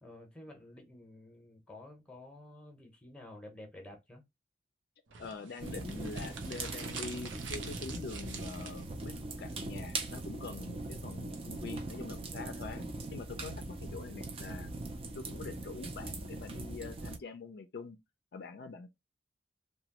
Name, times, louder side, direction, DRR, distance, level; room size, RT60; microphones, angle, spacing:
voice 1, 0.0-4.2, left 1 dB, 5° left, 0.8 m, -51 dB
sound 1, 5.1-9.1, right 6 dB, 85° right, 0.6 m, -46 dB
voice 2, 5.2-14.7 15.1-18.0 18.3-18.9, left 4 dB, 55° left, 0.4 m, -45 dB
sound 2, 5.6-17.2, right 2 dB, 30° right, 0.4 m, -41 dB
2.9 x 2.2 x 2.9 m
head